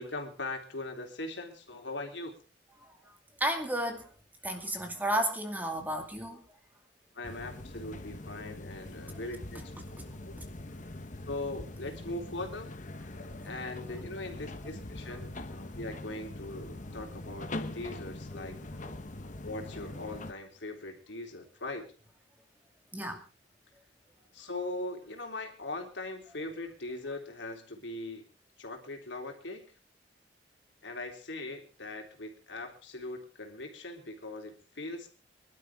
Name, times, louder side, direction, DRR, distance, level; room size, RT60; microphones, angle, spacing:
voice 1, 0.0-2.4 7.1-9.7 10.2-10.3 11.3-12.7 13.4-18.9 19.4-21.9 24.3-28.3 28.6-29.7 30.8-35.1, left 2 dB, 80° left, 3 dB, 3.7 m, -40 dB
voice 2, 3.4-4.1 4.4-6.4 18.3-18.5 22.9-23.2, right 1 dB, 10° right, 4 dB, 2.4 m, -32 dB
sound 1, 7.2-20.3, left 2 dB, 45° left, 1.2 m, -42 dB
24.5 x 12.0 x 3.7 m, 0.34 s
head